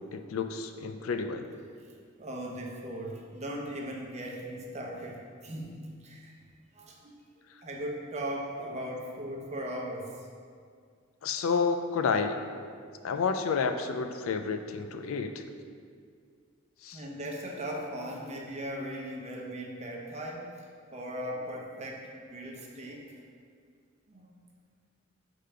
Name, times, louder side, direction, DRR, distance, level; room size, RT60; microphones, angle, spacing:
voice 1, 0.0-1.4 11.2-12.4 13.0-15.4 16.8-17.0, left 5 dB, 70° left, 7 dB, 0.4 m, -30 dB
voice 2, 2.2-5.8 6.0-6.3 6.7-7.2 7.6-10.3 16.9-20.5 20.9-23.2 24.1-24.3, equal, 35° right, -1 dB, 0.8 m, -38 dB
5.0 x 3.8 x 5.6 m, 2.1 s
head